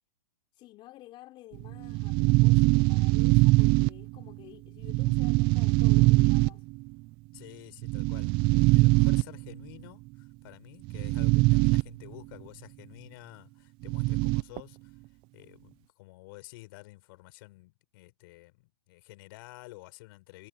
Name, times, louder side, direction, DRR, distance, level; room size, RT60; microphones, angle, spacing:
voice 1, 0.5-6.7, left 17 dB, 30° left, 4.6 m, -51 dB
sound 1, 1.5-4.4 4.8-6.9 7.8-9.6 10.8-11.8 12.1-12.2 13.8-14.6, right 23 dB, 35° right, 0.7 m, -22 dB
voice 2, 7.3-15.0 15.3-20.5, left 21 dB, 45° left, 5.7 m, -50 dB
hypercardioid pair, 125°, 16 cm